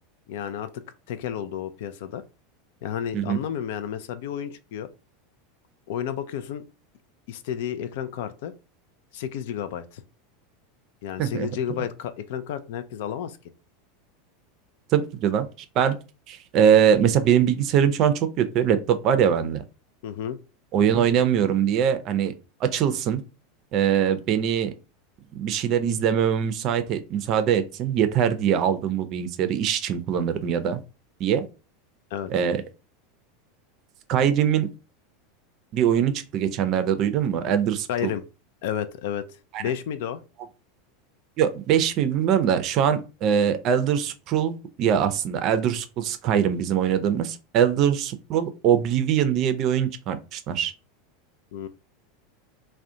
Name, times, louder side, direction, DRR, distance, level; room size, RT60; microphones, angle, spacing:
voice 1, 0.3-0.8 1.1-2.2 2.8-4.9 5.9-6.6 7.3-8.5 9.1-10.0 11.0-13.4 20.0-20.4 32.1-32.3 37.9-38.2 38.6-39.2 39.6-40.2 51.5-51.7, left 9 dB, 65° left, 0.3 m, -31 dB
voice 2, 14.9-15.5 15.8-16.0 16.3-19.6 20.7-22.3 22.6-23.2 23.7-24.7 25.4-30.8 31.2-31.4 32.3-32.6 34.1-34.7 35.7-38.1 39.5-39.6 41.4-50.7, right 8 dB, 45° right, 0.4 m, -22 dB
2.4 x 2.1 x 2.7 m
hypercardioid pair, 85°, 0 cm